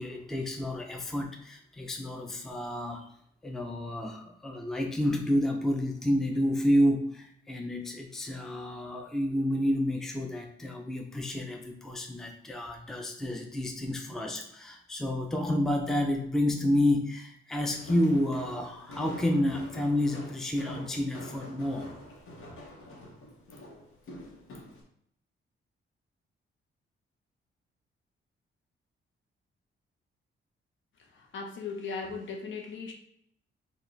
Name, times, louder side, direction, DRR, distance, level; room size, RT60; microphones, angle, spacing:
voice 1, 0.0-3.1 3.4-21.9, left 1 dB, ahead, 2 dB, 0.4 m, -29 dB
Walk footsteps, 17.6-24.8, left 1 dB, 85° left, 1.1 m, -45 dB
voice 2, 31.0-32.9, left 4 dB, 70° left, 2 dB, 0.8 m, -38 dB
4.8 x 2.3 x 3.2 m, 0.70 s
wide cardioid pair, 140°, 21 cm